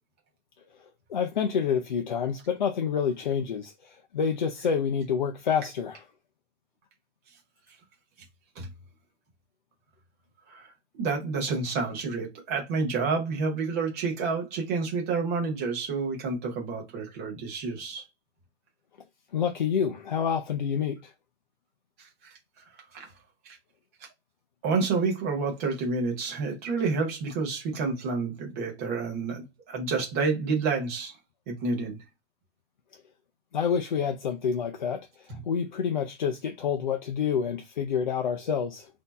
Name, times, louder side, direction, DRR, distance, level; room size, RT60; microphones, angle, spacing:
voice 1, 1.1-6.0 19.3-21.1 33.5-38.9, left 7 dB, 40° left, 0.5 m, -28 dB
voice 2, 11.0-18.0 22.2-22.3 22.9-23.1 24.6-31.1 31.5-32.0, right 4 dB, 15° right, 0.7 m, -29 dB
4.2 x 2.8 x 4.0 m
hypercardioid pair, 175°, 35 cm